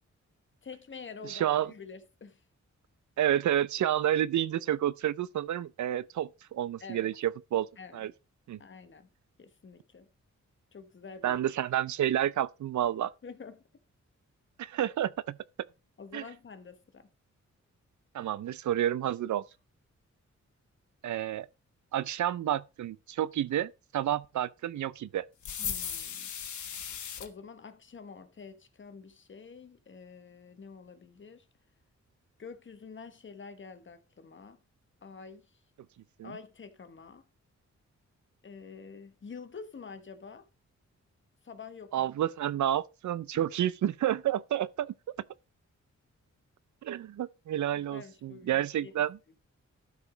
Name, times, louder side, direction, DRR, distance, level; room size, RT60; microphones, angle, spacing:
voice 1, 0.6-2.4 6.8-7.1 7.8-8.1 8.6-9.1 9.4-10.1 10.7-11.4 13.2-13.6 16.0-17.1 25.6-26.3 27.2-31.5 32.4-34.6 35.0-35.5 36.2-37.2 38.4-40.5 41.4-42.1 47.7-49.0, left 5 dB, 40° left, 1.3 m, -47 dB
voice 2, 1.2-1.7 3.2-7.7 7.9-8.1 8.5-8.6 11.2-13.1 14.6-15.4 16.1-16.2 18.1-19.4 21.0-21.5 21.9-25.2 36.2-36.3 41.9-44.9 46.8-49.2, right 11 dB, 80° right, 0.5 m, -30 dB
sound 1, 25.4-27.3, left 8 dB, 80° left, 1.3 m, -37 dB
12.0 x 5.0 x 5.0 m
wide cardioid pair, 145°, 29 cm